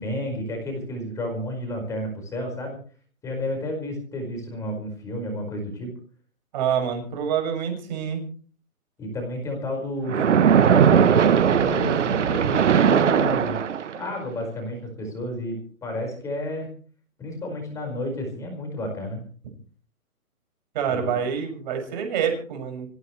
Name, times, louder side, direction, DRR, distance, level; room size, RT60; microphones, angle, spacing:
voice 1, 0.0-2.8 3.2-5.9 9.0-13.6 14.0-16.7 17.2-19.2 20.9-21.1, left 1 dB, 5° left, 2 dB, 5.2 m, -31 dB
voice 2, 6.5-8.2 20.7-22.9, right 8 dB, 30° right, 3 dB, 6.5 m, -26 dB
Splash splatter, 10.1-14.1, right 8 dB, 55° right, 1.0 m, -19 dB
26.0 x 16.0 x 3.3 m, 0.43 s
hypercardioid pair, 165°, 44 cm